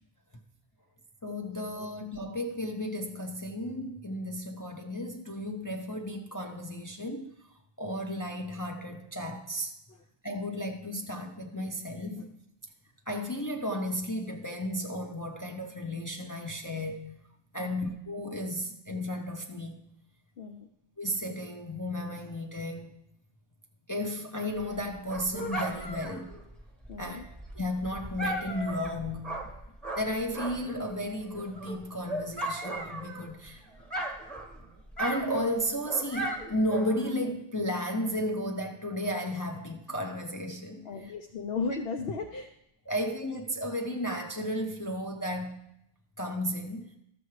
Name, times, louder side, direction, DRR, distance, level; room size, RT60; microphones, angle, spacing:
voice 1, 1.2-7.3 7.8-9.7 10.2-12.3 13.1-17.2 17.5-19.8 21.0-22.9 23.9-26.4 27.0-27.2 27.5-29.4 30.0-33.6 35.0-40.8 42.9-45.7 46.2-46.9, equal, 25° left, 0.5 m, -33 dB
voice 2, 20.4-20.7 26.9-27.3 40.8-42.5, left 4 dB, 70° left, 0.9 m, -36 dB
Dog, 24.6-30.8 31.2-33.5 33.8-37.2, right 1 dB, ahead, 1.2 m, -37 dB
13.0 x 7.0 x 3.2 m
omnidirectional pair, 1.1 m